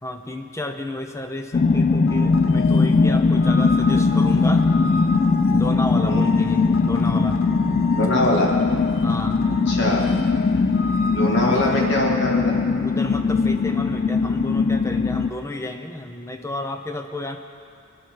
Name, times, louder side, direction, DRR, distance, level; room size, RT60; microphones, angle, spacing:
voice 1, 0.0-4.6 5.5-7.4 9.0-9.4 11.5-11.6 12.8-17.4, left 1 dB, 15° left, 5 dB, 0.7 m, -32 dB
sound 1, 1.5-15.3, left 4 dB, 35° left, 0.3 m, -20 dB
sound 2, 2.1-12.0, left 3 dB, 85° left, 0.7 m, -35 dB
voice 2, 7.9-8.5 9.7-10.1 11.1-12.5, left 1 dB, 60° left, -2 dB, 2.2 m, -23 dB
19.0 x 10.5 x 4.7 m, 2.3 s
head